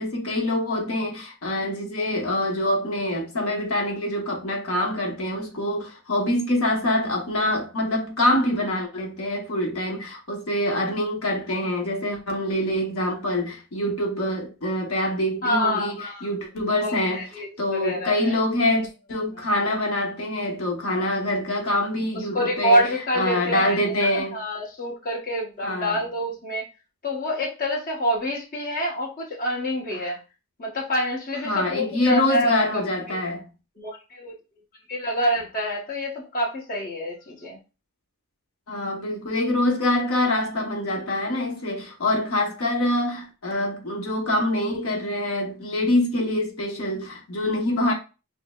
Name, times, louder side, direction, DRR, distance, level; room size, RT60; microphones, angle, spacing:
voice 1, 0.0-17.2 17.6-24.4 25.6-26.0 29.9-30.1 31.4-33.5 38.7-47.9, left 1 dB, 75° left, 0.9 m, -25 dB
voice 2, 15.4-16.3 16.8-18.3 22.3-26.6 27.0-30.2 30.6-33.2 33.8-34.3 34.9-37.6, equal, 40° left, 1.0 m, -27 dB
6.0 x 2.0 x 2.3 m
head